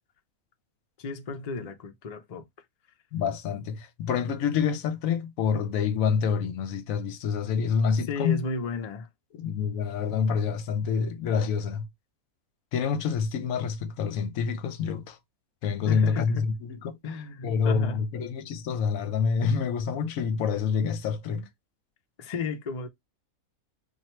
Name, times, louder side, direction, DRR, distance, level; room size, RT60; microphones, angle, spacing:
voice 1, 1.0-2.4 8.1-9.1 15.9-16.5 17.0-18.0 21.3-21.5 22.2-22.9, left 3 dB, 55° left, 0.4 m, -33 dB
voice 2, 3.1-8.4 9.3-11.9 12.7-15.2 15.6-17.0 17.4-21.4, left 6 dB, 75° left, 1.0 m, -27 dB
3.0 x 2.5 x 4.3 m
omnidirectional pair, 1.5 m